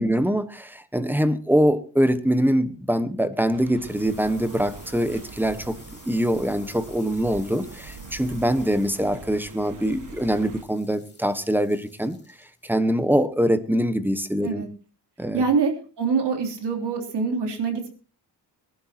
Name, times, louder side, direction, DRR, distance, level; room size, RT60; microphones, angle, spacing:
voice 1, 0.0-5.8 6.1-12.2 12.6-14.6 15.2-15.4, equal, 5° right, 12 dB, 1.2 m, -23 dB
sound 1, 3.1-14.4, left 4 dB, 25° left, 3.5 m, -52 dB
sound 2, 3.5-10.6, right 5 dB, 50° right, 1.8 m, -43 dB
voice 2, 15.3-17.9, right 5 dB, 75° right, 3 dB, 3.4 m, -25 dB
22.5 x 12.0 x 2.9 m, 0.36 s
cardioid pair, 100°, 42 cm